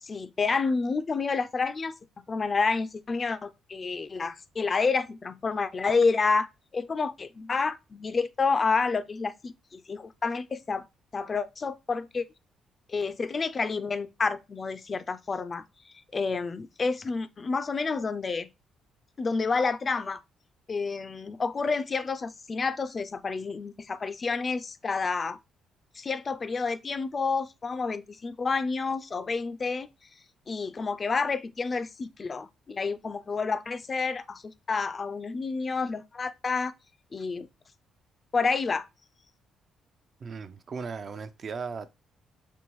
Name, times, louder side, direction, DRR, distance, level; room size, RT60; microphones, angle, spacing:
voice 1, 0.0-6.5 6.7-10.8 11.1-12.3 12.9-15.6 16.1-18.5 19.2-20.2 20.7-25.4 25.9-29.9 30.5-36.7 37.1-37.5 38.3-38.9, left 4 dB, 35° left, 0.4 m, -29 dB
voice 2, 40.2-41.9, right 5 dB, 50° right, 0.5 m, -37 dB
5.4 x 2.6 x 3.0 m
cardioid pair, 90°, 0 cm